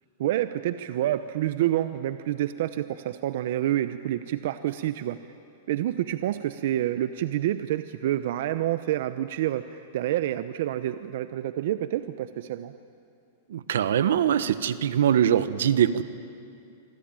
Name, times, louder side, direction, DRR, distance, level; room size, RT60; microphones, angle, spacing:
voice 1, 0.2-5.2 5.7-12.7, right 13 dB, 65° right, 11 dB, 0.9 m, -28 dB
voice 2, 13.5-16.0, right 9 dB, 85° right, 13 dB, 1.2 m, -22 dB
25.5 x 25.5 x 9.0 m, 2.5 s
supercardioid pair, 145°, 0 cm